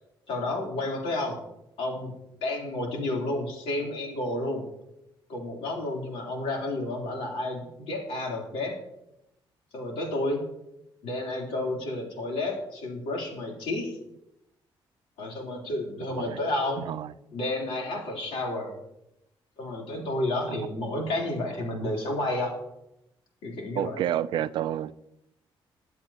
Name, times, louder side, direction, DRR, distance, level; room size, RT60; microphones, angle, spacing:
voice 1, 0.3-1.4 1.8-2.1 2.4-4.6 5.3-8.8 9.7-10.4 11.0-14.0 15.2-16.9 17.3-18.8 19.6-22.6 23.4-24.0, left 1 dB, 85° left, 3.4 m, -31 dB
voice 2, 16.8-17.1 20.5-20.6 23.8-25.2, right 11 dB, 60° right, 0.4 m, -30 dB
22.0 x 7.7 x 2.9 m
cardioid pair, 180°, 9 cm